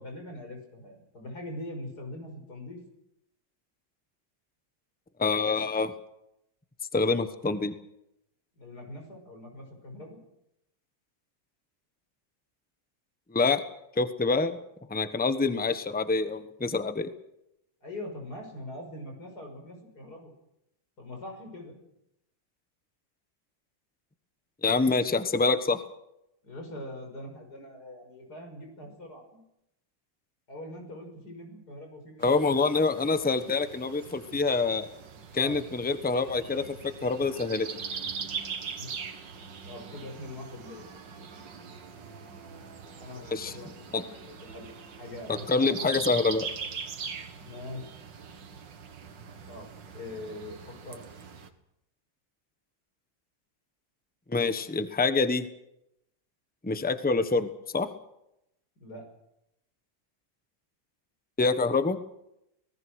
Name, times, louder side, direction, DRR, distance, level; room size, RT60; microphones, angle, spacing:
voice 1, 0.0-2.8 8.6-10.2 15.5-15.7 17.8-20.3 21.0-21.8 26.4-29.4 30.5-32.7 35.3-35.6 38.7-38.9 39.6-40.9 43.0-46.4 47.4-47.9 49.5-51.0 58.8-59.1, left 1 dB, 55° left, 3 dB, 6.6 m, -43 dB
voice 2, 5.2-5.9 6.9-7.7 13.3-13.6 14.0-14.6 14.9-17.1 24.6-25.8 32.2-34.9 35.3-37.7 43.3-43.5 43.9-44.0 45.3-46.5 54.3-55.5 56.6-57.9 61.4-62.0, left 3 dB, 5° left, 10 dB, 0.8 m, -26 dB
sound 1, 32.2-51.5, right 6 dB, 70° right, 2.2 m, -41 dB
26.0 x 19.0 x 6.4 m, 0.83 s
omnidirectional pair, 2.1 m